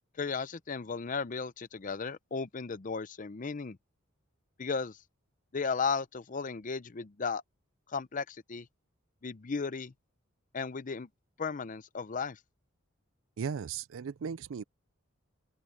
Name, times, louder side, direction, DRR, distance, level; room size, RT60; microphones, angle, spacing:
voice 1, 0.2-3.8 4.6-5.0 5.5-7.4 7.9-8.7 9.2-9.9 10.5-11.1 11.4-12.4, left 5 dB, 40° left, 0.6 m, -35 dB
voice 2, 13.4-14.6, right 6 dB, 75° right, 0.4 m, -36 dB
open air
head